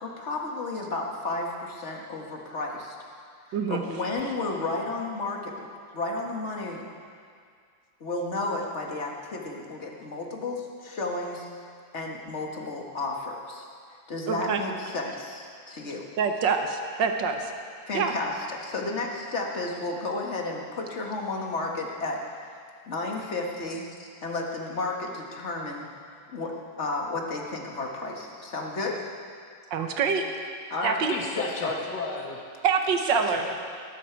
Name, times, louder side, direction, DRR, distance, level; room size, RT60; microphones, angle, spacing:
voice 1, 0.0-3.0 3.5-5.7 5.9-6.8 8.0-11.5 11.9-13.7 14.1-16.1 17.9-22.2 22.9-25.9 26.3-29.0 30.7-31.0 31.4-31.8, left 2 dB, 40° left, 0 dB, 1.7 m, -32 dB
voice 2, 14.3-14.6 16.2-17.5 17.9-18.1 29.7-30.2 30.8-31.1 32.6-33.4, right 6 dB, 70° right, 5 dB, 1.7 m, -25 dB
voice 3, 31.1-32.4 33.1-33.5, left 3 dB, 60° left, 0 dB, 2.3 m, -33 dB
19.5 x 11.5 x 4.6 m, 2.2 s
omnidirectional pair, 2.1 m